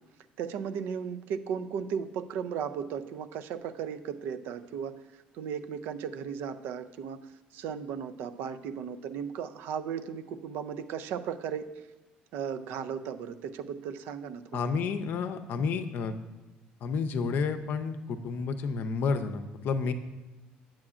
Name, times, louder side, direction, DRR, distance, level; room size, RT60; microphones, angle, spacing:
voice 1, 0.4-5.0 5.3-7.2 7.5-11.7 12.3-14.6, right 7 dB, 75° right, 10 dB, 0.4 m, -36 dB
voice 2, 14.5-16.2 16.8-19.9, left 5 dB, 65° left, 9 dB, 0.5 m, -30 dB
8.6 x 7.5 x 2.4 m, 1.1 s
supercardioid pair, 90°, 4 cm